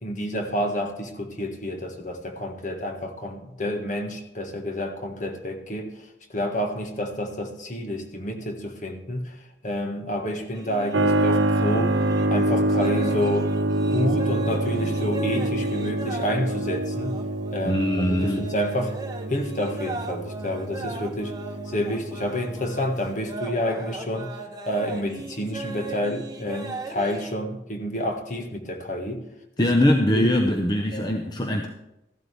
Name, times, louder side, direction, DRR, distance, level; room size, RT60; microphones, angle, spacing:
voice 1, 0.0-5.9 6.3-12.0 12.3-13.5 13.9-17.2 17.5-19.0 19.3-21.3 21.7-24.4 24.6-29.2 29.6-29.7 30.1-30.3 30.9-31.3, equal, 40° left, 3 dB, 1.6 m, -29 dB
sound 1, 10.5-27.4, right 2 dB, 20° right, 1.1 m, -38 dB
Keyboard (musical), 10.9-23.3, right 1 dB, 85° right, 0.9 m, -26 dB
voice 2, 17.6-18.4 29.6-31.7, left 1 dB, 20° left, 3 dB, 0.8 m, -22 dB
15.0 x 12.0 x 3.4 m, 0.89 s
head